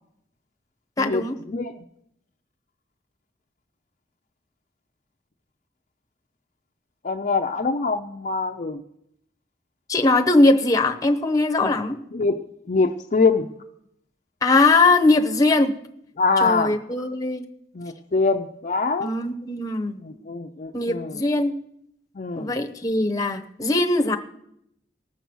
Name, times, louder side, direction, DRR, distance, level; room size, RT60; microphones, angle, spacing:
voice 1, 1.0-1.4 9.9-12.0 14.4-15.7 16.4-17.5 19.0-20.0 20.7-21.5 22.4-24.2, left 2 dB, 20° left, 5 dB, 0.9 m, -20 dB
voice 2, 7.0-8.8 11.6-11.7 12.1-12.4 12.7-13.5 16.2-16.7 17.7-19.1 20.0-21.1 22.2-22.5, left 4 dB, 45° left, 4 dB, 0.5 m, -23 dB
19.0 x 6.9 x 6.2 m, 0.77 s
head